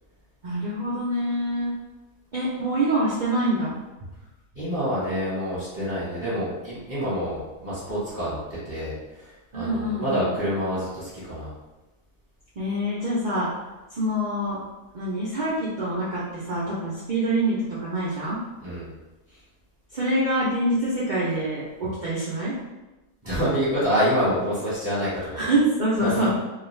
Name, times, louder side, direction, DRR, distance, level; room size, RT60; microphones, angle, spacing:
voice 1, 0.4-1.7 2.3-3.8 9.5-10.3 12.6-13.5 13.9-14.6 14.9-18.4 19.9-22.6 25.2-26.4, right 1 dB, 75° right, -8 dB, 0.4 m, -25 dB
voice 2, 4.5-11.5 18.6-18.9 23.2-25.5 26.0-26.4, equal, 10° right, -11 dB, 0.7 m, -27 dB
2.4 x 2.3 x 3.1 m, 1.1 s
omnidirectional pair, 1.6 m